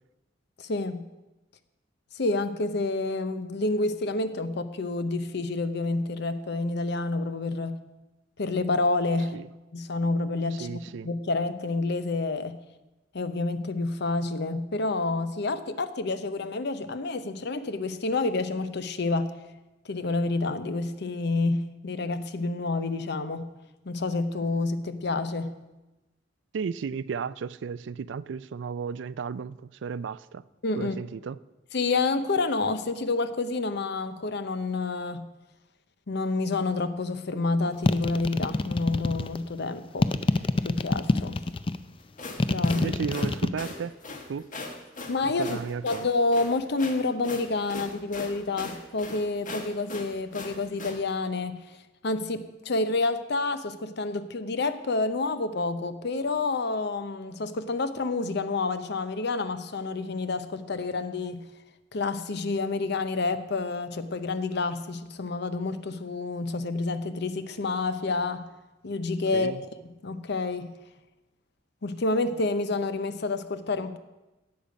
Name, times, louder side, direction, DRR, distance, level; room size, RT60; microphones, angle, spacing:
voice 1, 0.6-1.0 2.1-7.8 8.4-9.4 9.7-10.8 11.0-12.6 13.1-19.3 19.8-23.5 23.9-25.6 30.6-31.0 31.7-35.3 36.1-40.1 40.6-41.4 42.5-42.9 45.1-45.5 45.8-51.8 52.0-61.4 61.9-68.5 68.8-69.5 70.0-70.7 71.8-74.0, left 3 dB, 65° left, 0.7 m, -28 dB
voice 2, 10.5-11.1 26.5-30.4 30.8-31.4 42.7-43.9 44.3-44.5 45.2-46.1 69.3-69.6, right 6 dB, 70° right, 0.4 m, -34 dB
sound 1, 37.8-39.4 40.0-41.8 42.4-43.5, left 2 dB, 30° left, 0.4 m, -25 dB
sound 2, 42.0-51.0, left 3 dB, 45° left, 1.4 m, -40 dB
17.0 x 6.8 x 5.1 m
head